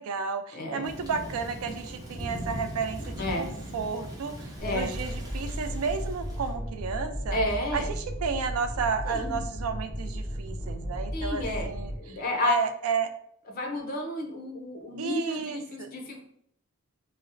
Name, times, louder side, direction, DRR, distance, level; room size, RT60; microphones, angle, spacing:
voice 1, 0.0-4.3 4.7-7.4 7.7-13.1 15.0-15.9, right 5 dB, 85° right, 9 dB, 0.4 m, -32 dB
voice 2, 0.5-0.9 3.2-3.5 4.6-4.9 7.3-7.9 9.0-9.4 11.1-12.6 13.5-16.2, left 2 dB, 45° left, 3 dB, 0.5 m, -31 dB
Thunder / Rain, 0.8-6.6, equal, 15° right, 0.5 m, -39 dB
sound 1, 4.6-12.0, equal, 10° left, 0.8 m, -35 dB
3.9 x 2.0 x 2.5 m, 0.70 s
head